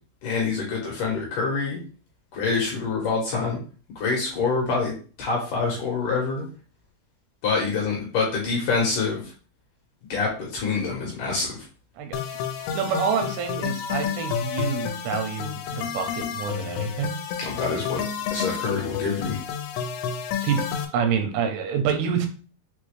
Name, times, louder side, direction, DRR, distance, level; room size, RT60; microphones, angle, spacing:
voice 1, 0.2-1.8 2.3-3.6 4.0-6.4 7.4-9.2 10.1-11.6 17.4-18.0 18.3-19.4, left 4 dB, 70° left, -2 dB, 2.2 m, -26 dB
sound 1, 12.1-20.9, left 8 dB, 85° left, 2.7 m, -30 dB
voice 2, 12.7-17.2 20.4-20.6 20.9-22.3, right 7 dB, 85° right, 5 dB, 2.8 m, -27 dB
6.4 x 2.2 x 3.1 m, 0.39 s
omnidirectional pair, 4.6 m